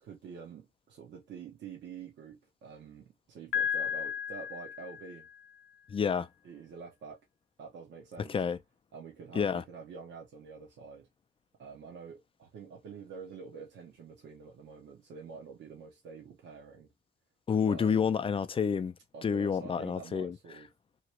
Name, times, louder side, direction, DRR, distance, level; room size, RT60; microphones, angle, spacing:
voice 1, 0.0-5.3 6.4-7.2 7.6-8.3 8.9-11.1 11.6-16.9 17.7-18.1 19.1-20.7, right 5 dB, 65° right, 0.9 m, -47 dB
Piano, 3.5-5.4, left 8 dB, 85° left, 0.5 m, -34 dB
voice 2, 5.9-6.3 8.3-8.6 9.3-9.6 17.5-18.9 19.2-20.4, left 6 dB, 30° left, 0.4 m, -29 dB
2.9 x 2.4 x 2.9 m
cardioid pair, 90°, 20 cm